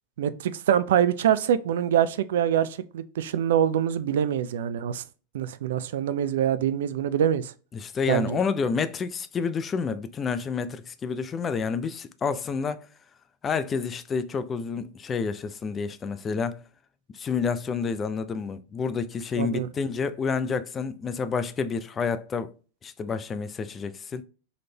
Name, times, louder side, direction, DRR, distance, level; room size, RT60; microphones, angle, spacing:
voice 1, 0.2-5.0 5.3-7.5 8.1-8.4 19.4-19.7, right 9 dB, 55° right, 0.3 m, -24 dB
voice 2, 7.7-12.9 13.4-16.6 17.1-22.5 22.8-24.2, left 5 dB, 20° left, 0.4 m, -29 dB
3.9 x 3.2 x 2.7 m
figure-of-eight pair, 90°, 0 cm